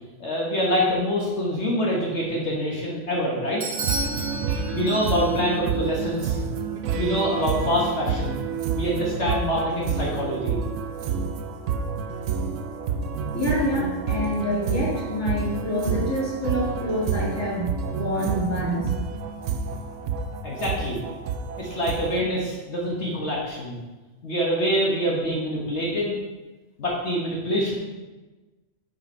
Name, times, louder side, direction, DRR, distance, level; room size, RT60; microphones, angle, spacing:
voice 1, 0.2-3.6 4.7-6.4 6.9-8.4 8.7-10.6 20.4-21.0 21.6-23.8 24.2-26.1 26.8-27.8, equal, 60° left, -3 dB, 1.5 m, -25 dB
Bell / Doorbell, 3.6-5.5, right 2 dB, 55° right, 1.2 m, -32 dB
sound 1, 3.8-22.2, right 6 dB, 75° right, 0.9 m, -29 dB
voice 2, 13.3-18.9, equal, 10° left, -6 dB, 1.7 m, -27 dB
6.0 x 5.7 x 4.3 m, 1.2 s
omnidirectional pair, 1.3 m